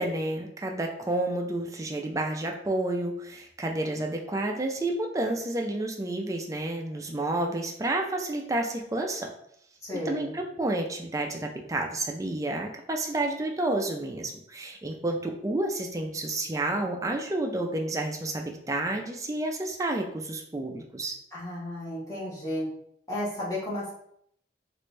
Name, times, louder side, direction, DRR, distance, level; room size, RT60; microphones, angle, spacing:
voice 1, 0.0-9.3 9.9-21.2, right 2 dB, 20° right, 2 dB, 0.4 m, -30 dB
voice 2, 9.8-10.3 21.3-22.7 23.1-23.9, left 1 dB, 20° left, -7 dB, 1.2 m, -33 dB
3.1 x 2.5 x 3.2 m, 0.69 s
head